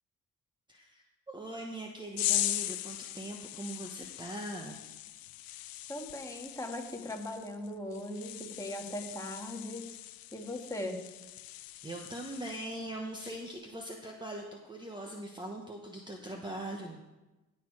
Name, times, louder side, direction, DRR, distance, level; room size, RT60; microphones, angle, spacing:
voice 1, 0.7-4.8 11.8-17.0, right 1 dB, 15° right, 1 dB, 1.1 m, -41 dB
sound 1, 2.2-12.9 13.2-13.6, left 14 dB, 80° left, 0.6 m, -39 dB
voice 2, 5.9-9.8 10.3-11.0, left 1 dB, 10° left, 1 dB, 1.8 m, -39 dB
16.0 x 6.7 x 4.8 m, 1.1 s
cardioid pair, 100°, 34 cm